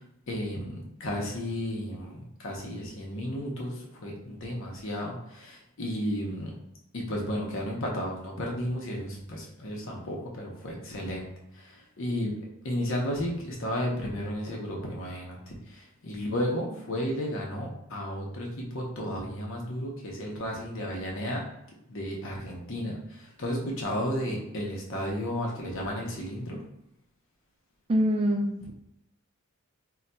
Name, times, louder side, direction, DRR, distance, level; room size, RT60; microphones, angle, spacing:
voice 1, 0.3-6.6 6.9-11.3 11.5-12.3 12.6-21.4 21.9-26.6, equal, 60° left, -1 dB, 0.7 m, -33 dB
voice 2, 27.9-28.7, equal, 25° right, 2 dB, 0.3 m, -25 dB
3.9 x 2.2 x 2.2 m, 0.82 s
head